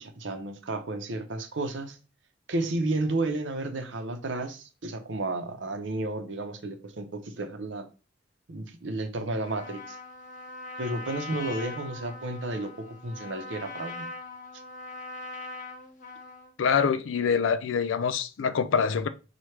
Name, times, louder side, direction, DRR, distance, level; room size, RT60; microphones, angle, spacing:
voice 1, 0.0-2.0 2.5-7.9 8.5-10.0 10.8-14.1, right 2 dB, 75° right, 0.7 m, -32 dB
Trumpet, 9.4-16.5, left 3 dB, 40° left, 0.8 m, -41 dB
voice 2, 16.6-19.1, left 6 dB, 90° left, 0.4 m, -25 dB
5.7 x 2.4 x 3.2 m
head